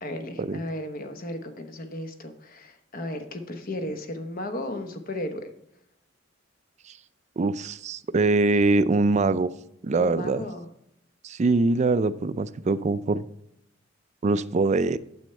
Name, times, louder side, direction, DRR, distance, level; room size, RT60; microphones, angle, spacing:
voice 1, 0.0-5.5 10.0-10.7, left 1 dB, 50° left, 7 dB, 1.0 m, -35 dB
voice 2, 7.4-9.5 9.8-10.4 11.2-13.2 14.2-15.0, right 3 dB, 35° right, 14 dB, 0.4 m, -23 dB
9.1 x 7.8 x 3.2 m, 0.77 s
head